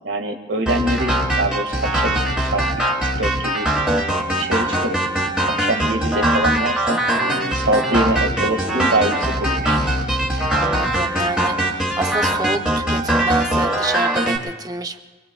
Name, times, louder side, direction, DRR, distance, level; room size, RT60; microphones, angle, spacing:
voice 1, 0.0-2.9 3.2-3.7 4.4-5.0 5.4-9.9, right 1 dB, 85° right, 4 dB, 1.8 m, -24 dB
sound 1, 0.7-14.4, right 1 dB, 5° right, 2.4 m, -21 dB
voice 2, 10.6-15.0, right 2 dB, 20° right, 6 dB, 0.7 m, -27 dB
26.0 x 23.0 x 2.3 m, 1.3 s
head